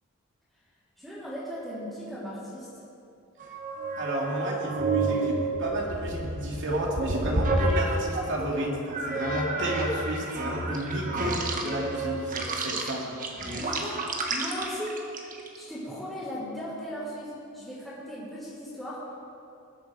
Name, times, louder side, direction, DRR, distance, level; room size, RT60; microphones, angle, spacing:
voice 1, 1.0-2.8 13.4-14.0 14.3-15.0 15.5-19.1, equal, ahead, -14 dB, 3.4 m, -37 dB
sound 1, 3.4-8.4 8.9-15.6, right 2 dB, 40° right, 1.4 m, -30 dB
voice 2, 4.0-13.1, right 1 dB, 60° right, -2 dB, 2.5 m, -32 dB
20.5 x 7.8 x 4.9 m, 2.6 s
head